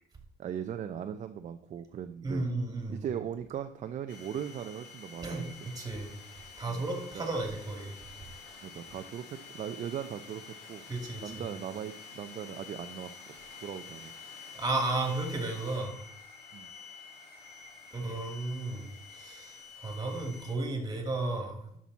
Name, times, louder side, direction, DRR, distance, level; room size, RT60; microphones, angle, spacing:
voice 1, 0.4-2.4 2.9-5.5 6.7-6.8 7.1-7.3 8.6-10.4 10.7-10.8 11.2-13.3 13.6-14.1 16.5-16.7, right 9 dB, 45° right, 8 dB, 0.6 m, -38 dB
voice 2, 2.2-3.0 5.2-6.1 6.6-7.9 10.9-11.4 14.5-16.0 17.9-21.7, right 2 dB, 20° right, 4 dB, 2.6 m, -34 dB
sound 1, 4.1-20.5, left 5 dB, 80° left, 3.4 m, -49 dB
11.5 x 6.1 x 4.1 m, 0.71 s
cardioid pair, 110°, 17 cm